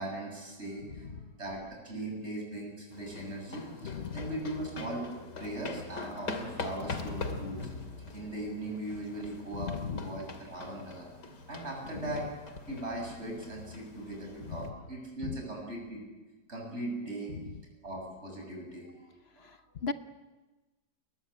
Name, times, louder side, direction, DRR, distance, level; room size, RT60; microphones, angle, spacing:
voice 1, 0.0-1.1 1.4-5.0 5.4-7.6 8.0-11.1 11.5-12.3 12.7-16.0 16.5-17.3 17.8-19.0 19.4-19.5, right 1 dB, 40° right, 0 dB, 8.0 m, -39 dB
voice 2, 0.9-1.3 3.8-4.3 6.8-7.4 9.5-10.2 11.9-12.2 14.4-14.7 15.2-15.4 17.3-17.6 19.4-19.9, left 6 dB, 45° left, 10 dB, 1.1 m, -38 dB
sound 1, 2.9-14.7, left 3 dB, 70° left, 3.1 m, -43 dB
30.0 x 22.0 x 8.7 m, 1.2 s
omnidirectional pair, 1.9 m